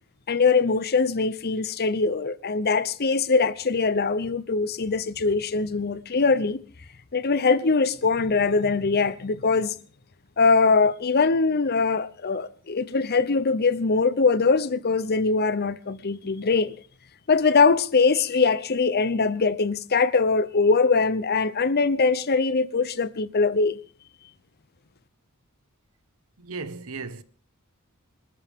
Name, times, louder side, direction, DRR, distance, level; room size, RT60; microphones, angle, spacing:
voice 1, 0.3-6.6 7.1-9.7 10.4-16.7 17.3-23.8, left 4 dB, 45° left, 0.8 m, -22 dB
voice 2, 26.4-27.2, right 4 dB, 70° right, 1.2 m, -35 dB
25.5 x 13.5 x 3.7 m
head